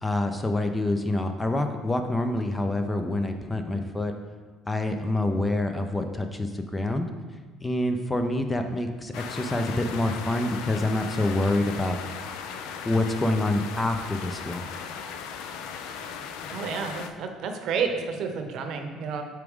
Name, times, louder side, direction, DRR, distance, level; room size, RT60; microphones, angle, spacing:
voice 1, 0.0-4.1 4.7-7.1 7.6-12.0 12.8-14.7, left 2 dB, 15° left, 6 dB, 0.4 m, -26 dB
sound 1, 9.1-17.1, left 6 dB, 80° left, 0.4 m, -37 dB
voice 2, 16.5-19.2, right 5 dB, 60° right, 5 dB, 0.7 m, -30 dB
6.0 x 4.7 x 3.6 m, 1.4 s
cardioid pair, 115°, 0 cm